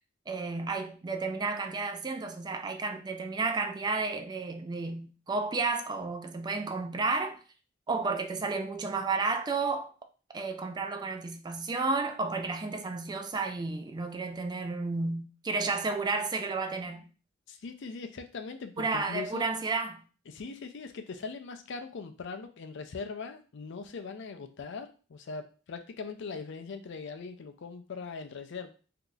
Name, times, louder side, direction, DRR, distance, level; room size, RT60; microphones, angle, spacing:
voice 1, 0.3-7.4 7.9-9.9 10.3-17.0 18.8-20.0, right 3 dB, 20° right, 0.3 m, -32 dB
voice 2, 17.5-19.4 20.3-28.7, left 4 dB, 65° left, 0.5 m, -40 dB
2.8 x 2.4 x 3.8 m
head